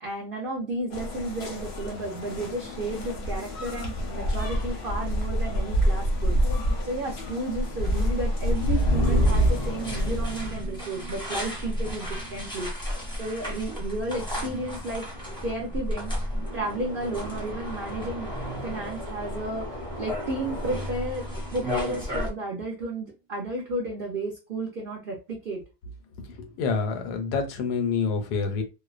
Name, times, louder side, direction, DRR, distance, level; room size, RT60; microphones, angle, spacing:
voice 1, 0.0-6.4 6.8-12.7 13.2-15.0 15.4-16.1 16.5-18.3 18.6-19.7 20.0-25.6, right 2 dB, 60° right, 0.6 m, -32 dB
sound 1, 0.9-10.8, equal, 60° left, 0.7 m, -27 dB
sound 2, 7.8-22.3, equal, 5° left, 0.5 m, -34 dB
sound 3, 8.8-22.6, right 1 dB, 25° right, 0.8 m, -39 dB
voice 2, 26.2-28.6, left 5 dB, 90° left, 1.2 m, -27 dB
2.6 x 2.0 x 2.3 m
omnidirectional pair, 1.7 m